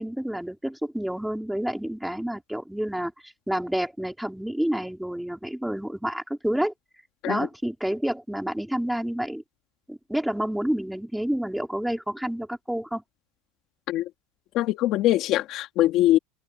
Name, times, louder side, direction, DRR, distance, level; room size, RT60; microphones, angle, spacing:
voice 1, 0.0-6.7 7.3-9.4 9.9-13.0, right 1 dB, ahead, 4.4 m, -29 dB
voice 2, 14.5-16.2, left 14 dB, 40° left, 2.4 m, -22 dB
supercardioid pair, 155°, 0 cm